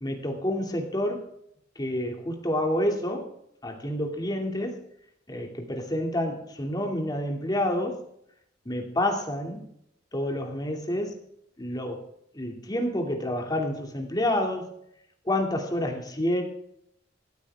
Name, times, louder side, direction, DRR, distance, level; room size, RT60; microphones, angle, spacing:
voice 1, 0.0-1.2 1.8-3.3 3.6-4.8 5.3-8.0 8.6-9.6 10.1-11.2 11.6-12.1 12.3-14.7 15.2-16.4, left 1 dB, 20° left, 2 dB, 2.6 m, -28 dB
16.5 x 13.5 x 3.6 m, 0.74 s
head